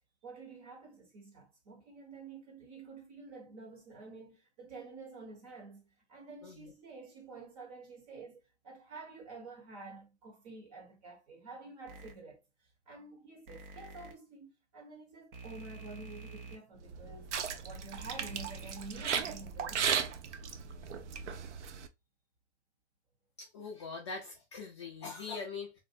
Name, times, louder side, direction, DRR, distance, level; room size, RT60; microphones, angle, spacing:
voice 1, 0.2-17.3 17.6-20.0, right 3 dB, 30° right, 1.1 m, -49 dB
voice 2, 6.4-6.7 23.4-25.8, left 4 dB, 25° left, 0.3 m, -42 dB
sound 1, 11.9-12.1 13.5-14.1 15.3-16.6 18.0-18.7, right 3 dB, 50° right, 0.8 m, -48 dB
sound 2, 16.8-21.9, right 7 dB, 90° right, 0.6 m, -36 dB
3.2 x 2.5 x 2.6 m
hypercardioid pair, 155°, 34 cm